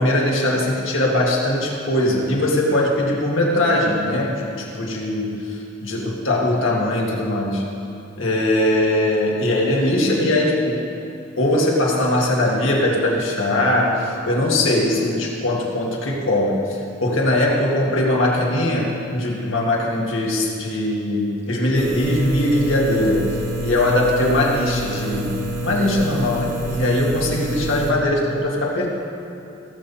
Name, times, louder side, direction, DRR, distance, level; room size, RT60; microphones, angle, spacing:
voice 1, 0.0-7.7 8.2-10.9 11.4-23.3 23.6-28.9, left 1 dB, 80° left, -2 dB, 2.1 m, -20 dB
sound 1, 21.7-27.9, right 1 dB, 40° right, 1.3 m, -27 dB
17.5 x 7.4 x 4.2 m, 2.8 s
head